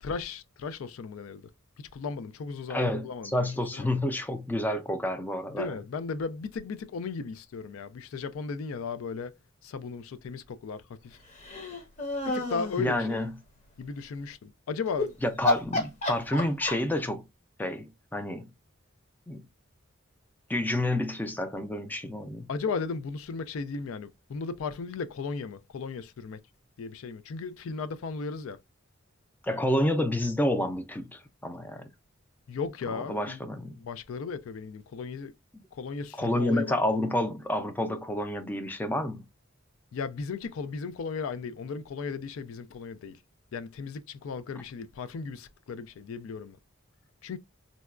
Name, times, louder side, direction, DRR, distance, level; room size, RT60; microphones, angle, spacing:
voice 1, 0.0-1.5 1.8-3.5 3.7-3.9 5.5-9.3 9.6-11.2 12.2-13.2 13.8-15.2 22.5-26.4 26.8-28.6 32.5-33.4 33.8-35.3 35.7-36.8 39.9-43.2 43.5-46.6 47.2-47.4, left 5 dB, 80° left, 0.4 m, -36 dB
voice 2, 2.7-5.8 12.8-13.3 15.2-17.2 17.6-18.4 19.3-19.5 20.5-22.5 29.4-31.9 33.1-33.7 35.5-35.6 36.2-39.2, left 1 dB, 10° left, 0.4 m, -29 dB
sound 1, 11.4-12.8 14.9-15.1 15.4-17.0, left 2 dB, 35° left, 0.8 m, -29 dB
3.9 x 2.2 x 2.3 m
head